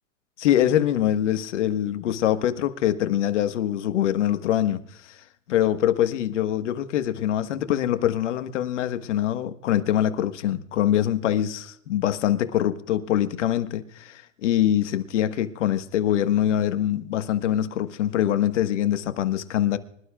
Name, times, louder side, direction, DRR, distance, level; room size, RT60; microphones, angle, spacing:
voice 1, 0.4-4.8 5.5-19.8, left 11 dB, 70° left, 1.4 m, -24 dB
25.5 x 12.0 x 2.3 m
hypercardioid pair, 125°, 37 cm